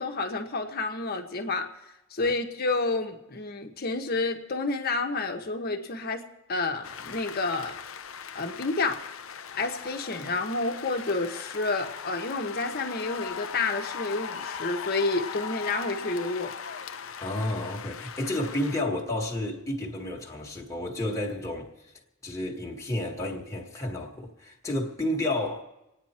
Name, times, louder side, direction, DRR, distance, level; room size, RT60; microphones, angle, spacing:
voice 1, 0.0-1.7 2.1-6.2 6.5-7.8 8.3-9.0 9.5-16.5, left 3 dB, 45° left, 1.2 m, -29 dB
sound 1, 6.8-18.8, left 7 dB, 70° left, 0.6 m, -39 dB
voice 2, 17.2-21.7 22.2-25.6, left 1 dB, 15° left, 1.6 m, -31 dB
27.0 x 9.4 x 4.4 m
head